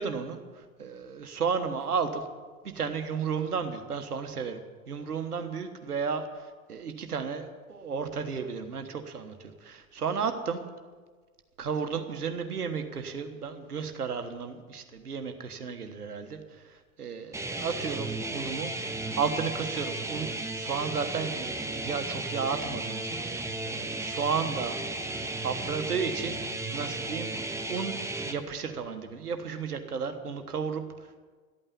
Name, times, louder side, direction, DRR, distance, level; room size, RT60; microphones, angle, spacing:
voice 1, 0.0-2.3 2.6-4.6 4.9-10.6 11.6-24.8 25.4-27.3 27.7-28.0 28.3-30.8, right 6 dB, 85° right, 8 dB, 1.4 m, -33 dB
sound 1, 17.3-28.3, right 2 dB, 5° right, 1.3 m, -34 dB
13.0 x 8.9 x 10.0 m, 1.4 s
figure-of-eight pair, 85°, 45 cm